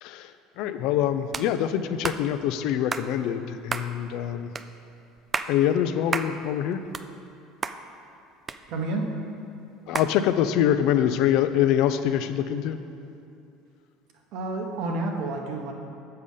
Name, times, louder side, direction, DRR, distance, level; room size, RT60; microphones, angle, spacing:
voice 1, 0.0-4.5 5.5-6.8 9.9-12.8, left 10 dB, 65° left, 10 dB, 0.3 m, -25 dB
sound 1, 1.3-1.5 2.0-2.2 2.9-3.1 3.7-3.9 4.6-4.7 5.2-5.5 6.1-6.3 6.7-7.4 7.6-7.8 8.5-9.0 9.9-10.1, right 4 dB, 25° right, 0.3 m, -30 dB
voice 2, 8.7-9.0 14.3-15.7, right 2 dB, 65° right, 2 dB, 0.9 m, -29 dB
6.7 x 5.0 x 5.4 m, 2.6 s
supercardioid pair, 105°, 0 cm